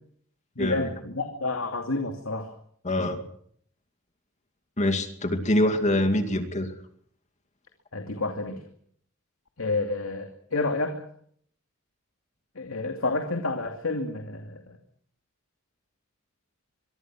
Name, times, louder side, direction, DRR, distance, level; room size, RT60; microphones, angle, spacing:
voice 1, 0.6-2.5 7.9-8.6 9.6-10.9 12.6-14.6, left 3 dB, 85° left, 4 dB, 2.6 m, -29 dB
voice 2, 2.8-3.2 4.8-6.7, left 1 dB, 35° left, 6 dB, 2.5 m, -24 dB
24.0 x 24.0 x 6.2 m, 0.64 s
head